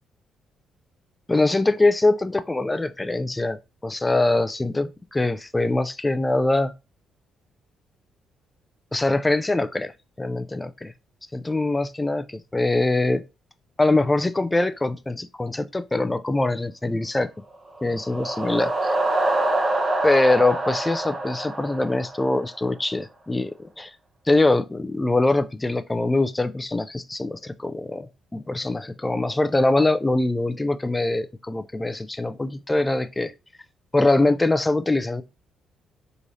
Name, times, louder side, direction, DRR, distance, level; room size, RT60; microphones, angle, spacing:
voice 1, 1.3-6.7 8.9-9.9 10.2-10.9 11.3-13.2 13.8-17.3 17.8-19.0 20.0-23.9 24.3-33.3 33.9-35.2, left 2 dB, 15° left, 0.3 m, -23 dB
sound 1, 17.7-22.6, right 2 dB, 30° right, 0.9 m, -25 dB
3.7 x 3.1 x 2.7 m
cardioid pair, 90°, 0 cm